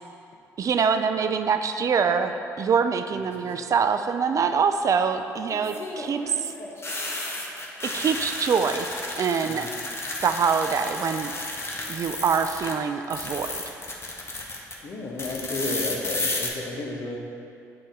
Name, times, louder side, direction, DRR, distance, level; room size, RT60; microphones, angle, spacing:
voice 1, 0.6-6.5 7.8-8.9 9.1-9.7 10.2-11.3 11.9-13.7, right 6 dB, 45° right, 8 dB, 0.3 m, -24 dB
sound 1, 3.1-3.6 5.5-12.7 13.0-14.7 15.2-16.5, left 2 dB, 35° left, 1.0 m, -33 dB
voice 2, 14.8-17.2, left 2 dB, 55° left, 1 dB, 0.8 m, -32 dB
7.7 x 3.9 x 3.6 m, 2.7 s
hypercardioid pair, 55°, 8 cm